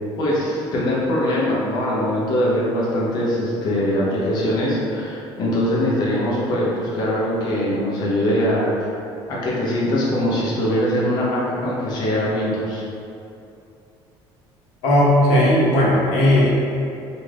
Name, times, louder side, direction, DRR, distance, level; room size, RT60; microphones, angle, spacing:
voice 1, 0.2-8.9 9.3-12.8, equal, 40° left, -6 dB, 0.7 m, -22 dB
voice 2, 14.8-16.5, left 1 dB, 75° left, -6 dB, 0.8 m, -16 dB
2.6 x 2.3 x 3.2 m, 2.6 s
cardioid pair, 165°, 10 cm